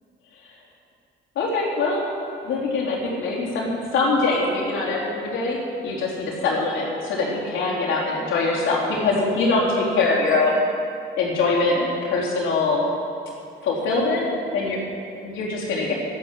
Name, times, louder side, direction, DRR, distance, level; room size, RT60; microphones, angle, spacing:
voice 1, 1.4-2.0 2.4-5.6 5.8-10.6 11.2-12.8 13.6-14.8 15.2-15.9, left 3 dB, 80° left, -4 dB, 4.1 m, -23 dB
12.5 x 11.5 x 7.7 m, 2.5 s
cardioid pair, 90°, 20 cm